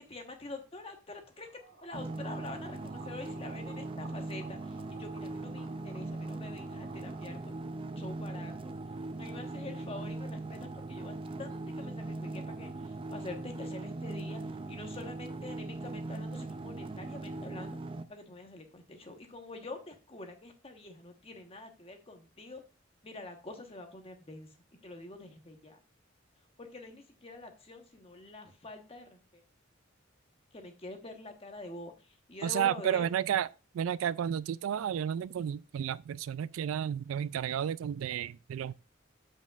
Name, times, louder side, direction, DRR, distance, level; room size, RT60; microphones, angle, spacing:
voice 1, 0.0-1.5 1.8-8.7 9.2-17.8 18.1-22.6 23.0-24.5 24.8-25.8 26.6-29.4 30.5-33.1, left 2 dB, 30° left, 1.2 m, -46 dB
sound 1, 1.3-7.4, right 4 dB, 55° right, 2.0 m, -55 dB
sound 2, 1.9-18.0, right 2 dB, 25° right, 0.4 m, -40 dB
voice 2, 32.4-33.5 33.7-38.7, right 9 dB, 90° right, 0.3 m, -32 dB
13.5 x 5.2 x 2.4 m
head